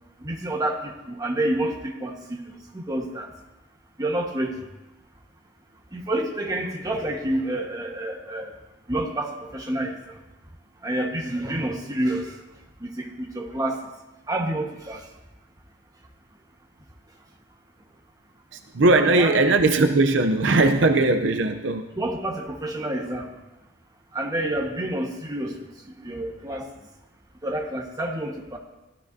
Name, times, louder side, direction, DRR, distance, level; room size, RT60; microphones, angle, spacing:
voice 1, 0.2-2.4 2.7-3.3 4.0-4.6 5.9-8.5 8.9-10.2 10.8-12.4 12.8-13.8 14.3-15.1 18.9-19.3 22.0-23.3 24.1-25.6 26.0-26.7 27.4-28.6, right 1 dB, 20° right, 1 dB, 1.3 m, -28 dB
voice 2, 18.5-21.9, right 2 dB, 65° right, 7 dB, 0.6 m, -19 dB
16.0 x 13.0 x 2.7 m, 1.0 s
head